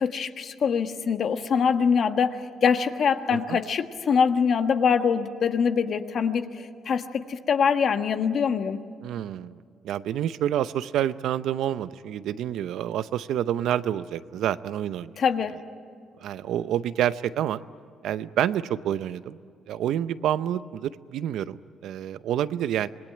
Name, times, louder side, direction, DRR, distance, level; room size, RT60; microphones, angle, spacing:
voice 1, 0.0-6.5 6.8-8.8 15.2-15.5, left 6 dB, 60° left, 7 dB, 1.4 m, -24 dB
voice 2, 9.0-9.6 9.8-15.1 16.2-17.6 18.0-19.4 19.7-22.9, right 11 dB, 80° right, 14 dB, 0.7 m, -28 dB
26.0 x 20.0 x 9.2 m, 2.2 s
cardioid pair, 90°, 0 cm